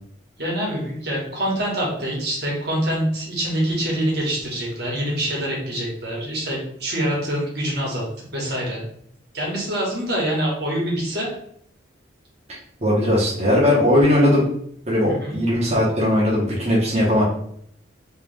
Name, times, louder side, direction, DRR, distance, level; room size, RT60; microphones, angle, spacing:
voice 1, 0.4-8.0 8.3-8.8 9.3-11.3 15.0-15.3, right 1 dB, 55° right, -3 dB, 1.5 m, -25 dB
voice 2, 12.5-14.5 14.9-17.2, left 1 dB, 35° right, -6 dB, 1.0 m, -19 dB
3.3 x 3.0 x 3.4 m, 0.66 s
head